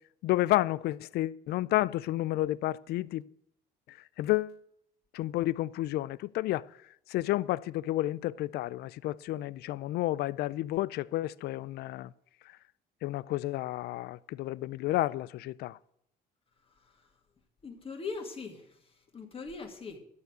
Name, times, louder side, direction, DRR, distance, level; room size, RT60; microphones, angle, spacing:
voice 1, 0.2-3.2 4.2-4.6 5.1-6.7 7.1-12.1 13.0-15.8, left 16 dB, 70° left, 0.4 m, -31 dB
voice 2, 17.6-18.7 19.1-20.0, left 4 dB, 35° left, 2.1 m, -40 dB
12.0 x 6.9 x 8.0 m
cardioid pair, 110°, 17 cm